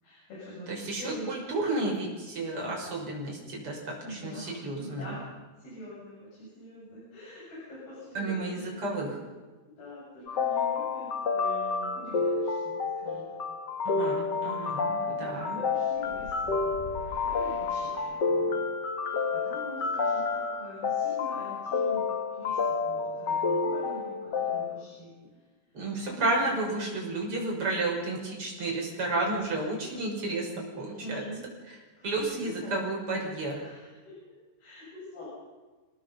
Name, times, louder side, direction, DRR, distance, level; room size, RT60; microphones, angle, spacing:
voice 1, 0.0-1.4 2.6-2.7 4.0-5.2 5.6-9.2 9.7-13.4 14.9-18.7 19.0-25.1 26.1-26.6 30.8-31.5 32.0-32.9 33.6-34.1 34.6-35.3, equal, 85° left, -8 dB, 9.9 m, -45 dB
voice 2, 0.7-5.2 8.1-9.2 13.8-15.6 25.7-31.3 31.7-31.8 32.0-33.6, right 2 dB, 35° right, -1 dB, 6.8 m, -32 dB
sound 1, 10.3-24.7, left 4 dB, 40° left, 1.6 m, -29 dB
sound 2, 16.0-18.6, left 4 dB, 70° left, 4.2 m, -45 dB
27.5 x 19.0 x 5.5 m, 1.3 s
omnidirectional pair, 4.3 m